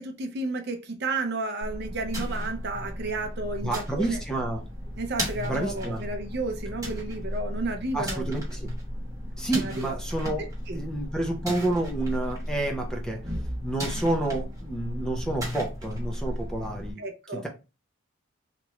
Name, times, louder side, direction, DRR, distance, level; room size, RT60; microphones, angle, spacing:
voice 1, 0.0-4.2 5.0-8.3 9.4-9.9 10.7-10.8 17.0-17.4, right 2 dB, 50° right, 0.5 m, -32 dB
sound 1, 1.6-16.9, equal, 15° right, 1.1 m, -34 dB
voice 2, 3.6-4.6 5.5-6.0 7.9-8.7 9.4-10.4 10.7-13.2 13.6-17.0 17.4-17.5, right 2 dB, 5° left, 0.5 m, -29 dB
2.9 x 2.4 x 3.1 m
head